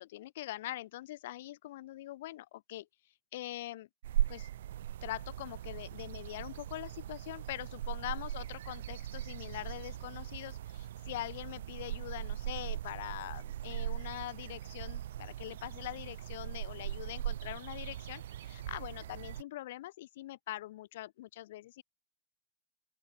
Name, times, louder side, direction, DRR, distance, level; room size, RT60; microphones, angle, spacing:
voice 1, 0.0-2.9 3.3-3.9 4.3-4.5 5.0-21.8, left 15 dB, 55° left, 0.4 m, -43 dB
sound 1, 4.0-19.4, right 12 dB, 70° right, 0.6 m, -39 dB
open air
supercardioid pair, 160°, 0 cm